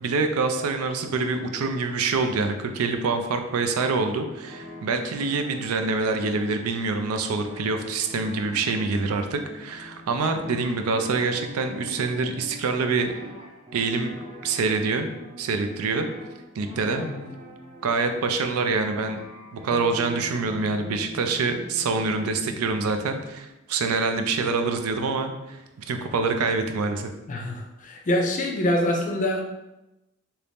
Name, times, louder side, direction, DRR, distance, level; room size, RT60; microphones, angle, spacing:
voice 1, 0.0-13.1 13.7-15.1 15.4-16.1 16.6-17.0 17.8-19.2 19.5-25.6 25.9-27.1, right 4 dB, 85° right, 6 dB, 0.4 m, -26 dB
sound 1, 4.0-23.3, left 1 dB, 30° right, 0.8 m, -44 dB
voice 2, 17.0-17.3 27.3-29.4, left 1 dB, 35° left, 2 dB, 0.5 m, -25 dB
2.9 x 2.6 x 3.4 m, 0.96 s
head